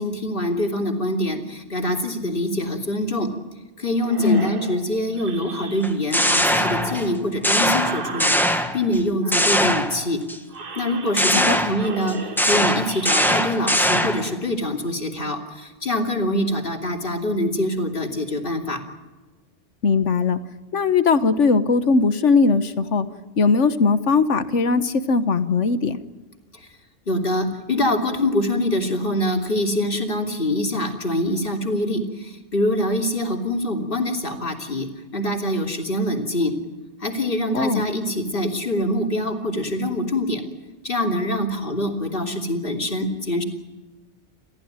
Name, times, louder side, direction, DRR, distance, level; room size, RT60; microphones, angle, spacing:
voice 1, 0.0-3.3 3.8-10.2 10.7-18.8 26.5-26.7 27.1-34.9 35.1-36.5 37.0-40.4 40.8-43.4, left 1 dB, 50° left, 3 dB, 3.1 m, -24 dB
sound 1, 4.0-6.1 6.4-8.8 9.2-10.1 10.5-11.5 11.7-13.5, right 4 dB, 50° right, 1.4 m, -37 dB
sound 2, 5.8-7.1 7.4-9.0 9.3-10.4 11.2-14.3, equal, ahead, 1.6 m, -21 dB
voice 2, 19.8-20.4 20.7-23.1 23.4-26.0 37.5-37.8, left 4 dB, 80° left, 12 dB, 1.5 m, -19 dB
30.0 x 15.0 x 9.0 m, 1.2 s
omnidirectional pair, 1.2 m